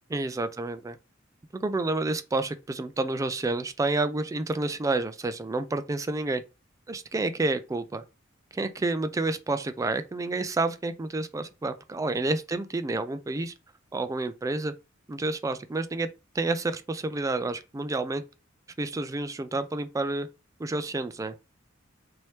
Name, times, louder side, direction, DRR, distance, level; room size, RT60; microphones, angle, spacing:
voice 1, 0.1-1.0 1.5-6.4 6.9-8.0 8.5-13.5 13.9-14.7 15.1-16.1 16.3-18.2 18.8-20.3 20.6-21.4, right 2 dB, 15° right, 0.3 m, -29 dB
3.1 x 2.8 x 3.2 m
head